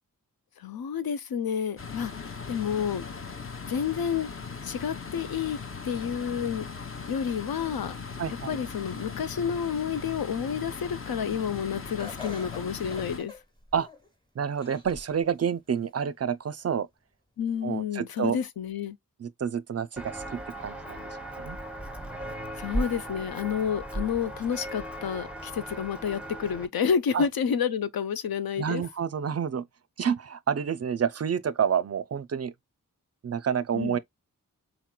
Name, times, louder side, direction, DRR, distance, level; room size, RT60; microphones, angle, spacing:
voice 1, 0.6-3.0 3.7-4.3 4.6-6.7 7.1-8.0 8.5-13.4 17.4-19.0 22.6-28.8 33.7-34.0, left 7 dB, 85° left, 0.5 m, -30 dB
sound 1, 1.8-13.2, left 5 dB, 35° left, 0.6 m, -39 dB
voice 2, 8.2-8.6 13.7-13.9 14.4-16.9 17.6-18.4 19.2-21.1 21.4-21.6 27.1-27.3 28.6-29.7 30.0-32.5 33.2-34.0, right 7 dB, 45° right, 0.4 m, -29 dB
Laughter, 12.0-14.1 14.6-15.2 15.7-15.8 16.8-16.9, left 4 dB, 10° left, 1.2 m, -44 dB
Walk footsteps, 20.0-26.7, right 1 dB, 5° right, 0.7 m, -37 dB
4.1 x 2.9 x 2.2 m
wide cardioid pair, 55°, 35 cm